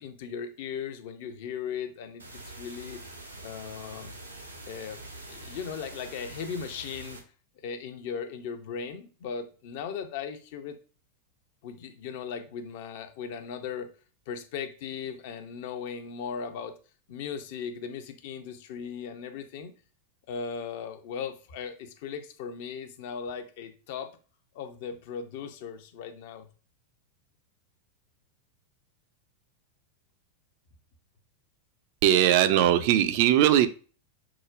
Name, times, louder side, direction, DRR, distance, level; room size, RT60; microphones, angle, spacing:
voice 1, 0.0-3.0 3.4-4.1 4.7-7.2 7.6-10.8 11.6-13.9 14.3-16.7 17.1-19.7 20.3-24.1 24.5-26.5, left 6 dB, 50° left, 8 dB, 0.6 m, -37 dB
sound 1, 2.2-7.2, right 2 dB, 85° right, 0.9 m, -44 dB
voice 2, 32.0-33.7, right 11 dB, 45° right, 11 dB, 0.4 m, -20 dB
4.9 x 2.1 x 2.5 m, 0.37 s
figure-of-eight pair, 90°, 0 cm